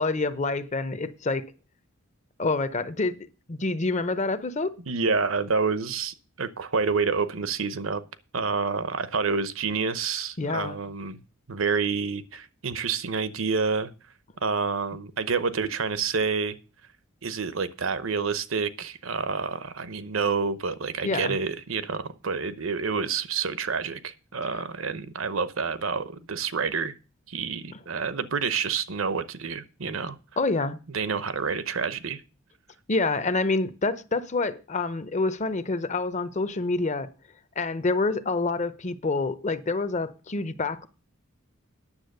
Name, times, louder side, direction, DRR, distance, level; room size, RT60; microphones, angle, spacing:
voice 1, 0.0-1.4 2.4-4.7 10.4-10.8 21.0-21.4 30.4-30.8 32.9-37.1 37.6-40.9, left 3 dB, 35° left, 0.7 m, -27 dB
voice 2, 4.9-8.0 8.3-11.2 11.5-13.9 14.4-16.6 17.2-26.9 27.3-30.2 30.9-32.2, right 5 dB, 70° right, 0.9 m, -28 dB
9.9 x 7.2 x 6.6 m
head